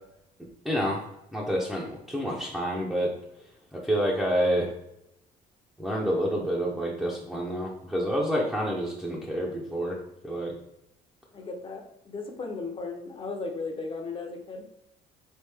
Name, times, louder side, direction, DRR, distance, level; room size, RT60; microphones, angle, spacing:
voice 1, 0.6-1.0 1.3-3.1 3.7-4.7 5.8-10.0 10.2-10.5, equal, ahead, -5 dB, 0.6 m, -28 dB
voice 2, 11.3-14.7, left 3 dB, 30° left, 4 dB, 0.8 m, -36 dB
3.6 x 3.3 x 3.4 m, 0.83 s
cardioid pair, 110°, 17 cm